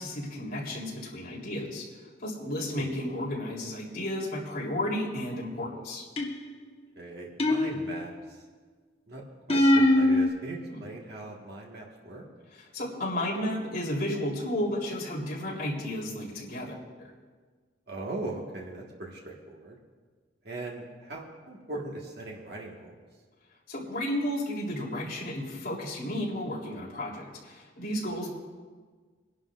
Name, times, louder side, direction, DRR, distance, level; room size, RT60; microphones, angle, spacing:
voice 1, 0.0-1.8 2.2-6.0 10.7-10.8 12.5-16.7 23.7-28.3, left 1 dB, 45° left, -5 dB, 3.3 m, -33 dB
voice 2, 2.7-3.1 7.0-8.1 9.1-12.3 17.9-19.8 20.4-22.9, right 2 dB, 55° right, -2 dB, 1.6 m, -40 dB
sound 1, 6.2-6.6 7.4-8.3 9.5-10.3, left 1 dB, 30° left, 1.0 m, -22 dB
25.0 x 11.5 x 2.5 m, 1.5 s
head